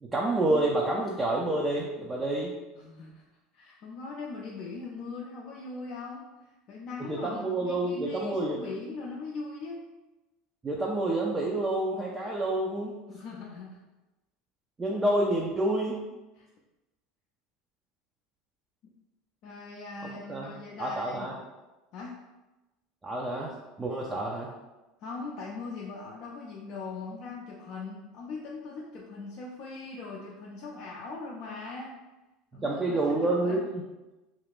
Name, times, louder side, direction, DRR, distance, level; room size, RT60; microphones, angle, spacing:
voice 1, 0.0-2.5 7.0-8.6 10.6-12.9 14.8-16.0 20.0-20.5 20.8-21.3 23.0-23.5 23.8-24.5 32.5-33.8, right 2 dB, 20° right, -3 dB, 0.5 m, -28 dB
voice 2, 2.8-3.2 3.5-9.8 13.1-13.8 16.4-16.5 19.4-21.3 21.9-22.2 25.0-32.0 32.5-33.7, left 3 dB, 55° left, -3 dB, 0.4 m, -40 dB
2.5 x 2.3 x 3.4 m, 1.1 s
hypercardioid pair, 80°, 0 cm